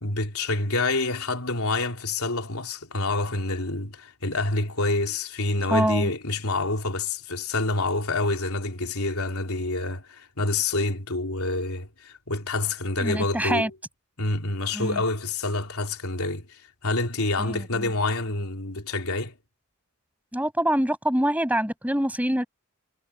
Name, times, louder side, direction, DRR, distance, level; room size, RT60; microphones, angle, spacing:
voice 1, 0.0-13.7 14.2-19.4, left 2 dB, 75° left, 3.7 m, -27 dB
voice 2, 5.7-6.1 13.0-13.7 14.7-15.0 17.4-17.9 20.3-22.4, right 1 dB, 5° right, 6.1 m, -25 dB
head